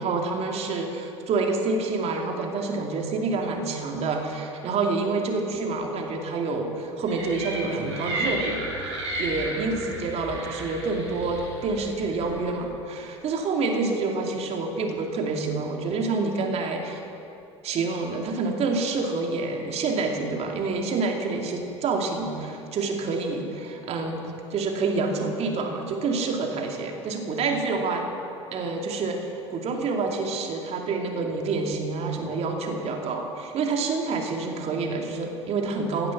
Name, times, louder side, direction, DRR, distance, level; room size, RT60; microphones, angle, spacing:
voice 1, 0.0-8.6 9.2-17.0 17.6-24.2 24.5-28.0 28.5-36.1, right 3 dB, 45° right, 2 dB, 2.6 m, -27 dB
sound 1, 7.1-12.5, right 1 dB, 80° right, 4.5 m, -33 dB
17.0 x 11.5 x 6.1 m, 2.7 s
hypercardioid pair, 70°, 15 cm